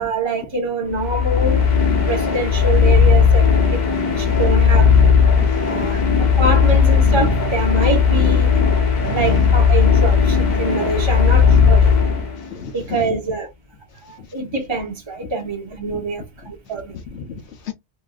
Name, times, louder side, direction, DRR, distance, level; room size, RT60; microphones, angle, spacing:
voice 1, 0.0-1.6 2.0-3.8 4.2-4.9 5.6-6.0 6.4-8.5 9.1-11.9 12.7-13.5 14.1-16.9, right 3 dB, 25° right, 1.1 m, -24 dB
sound 1, 0.9-12.6, left 6 dB, 45° left, 0.9 m, -16 dB
voice 2, 5.4-6.3 6.7-6.8 8.9-9.3 12.2-13.1 15.2-15.3 15.9-16.0 16.7-17.7, left 7 dB, 80° left, 1.0 m, -34 dB
3.0 x 2.6 x 2.4 m
omnidirectional pair, 1.1 m